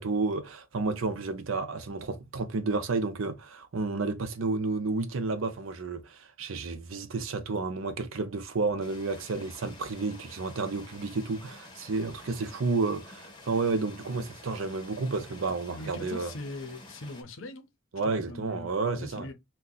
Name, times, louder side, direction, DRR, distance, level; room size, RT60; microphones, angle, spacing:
voice 1, 0.0-16.3 17.9-19.3, right 3 dB, 85° right, 0.6 m, -31 dB
sound 1, 8.8-17.2, left 2 dB, 25° left, 0.9 m, -50 dB
voice 2, 15.7-17.7 18.0-19.3, left 2 dB, 70° left, 0.7 m, -41 dB
2.8 x 2.2 x 3.8 m
head